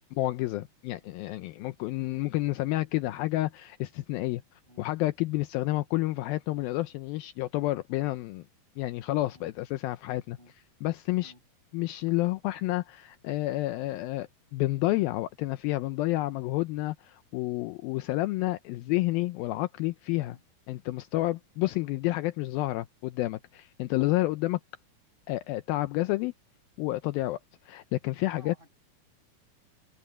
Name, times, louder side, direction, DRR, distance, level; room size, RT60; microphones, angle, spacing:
voice 1, 0.1-4.4 4.8-8.4 8.8-10.4 10.8-11.3 11.7-20.4 20.7-24.6 25.3-26.3 26.8-27.4 27.7-28.5, left 18 dB, 80° left, 2.4 m, -30 dB
voice 2, 28.2-28.7, right 1 dB, 15° right, 7.4 m, -56 dB
omnidirectional pair, 4.4 m